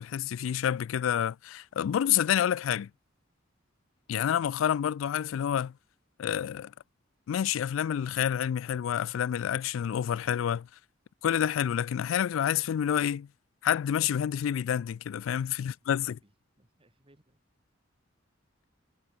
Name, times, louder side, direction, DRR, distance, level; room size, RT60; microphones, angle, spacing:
voice 1, 0.0-2.9 4.1-5.7 6.2-6.7 7.3-10.7 11.2-13.3 13.6-16.1, left 9 dB, 85° left, 0.3 m, -28 dB
voice 2, 15.3-17.4, right 1 dB, 30° right, 3.4 m, -65 dB
head